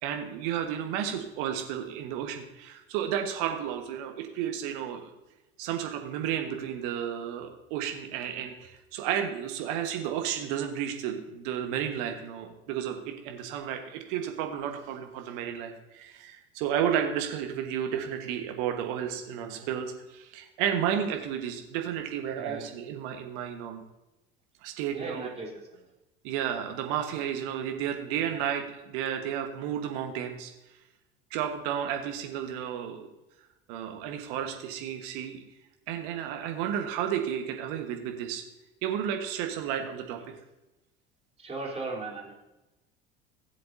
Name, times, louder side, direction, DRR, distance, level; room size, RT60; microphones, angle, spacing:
voice 1, 0.0-5.1 5.6-23.8 24.6-25.3 26.2-30.5 31.3-33.1 33.7-35.4 35.9-38.4 38.8-40.2, right 9 dB, 60° right, 4 dB, 1.5 m, -32 dB
voice 2, 22.4-22.7 24.9-25.8 26.7-27.1 39.8-39.9 41.4-42.3, right 3 dB, 20° right, -3 dB, 3.8 m, -38 dB
17.0 x 7.7 x 2.8 m, 0.99 s
figure-of-eight pair, 70°, 30 cm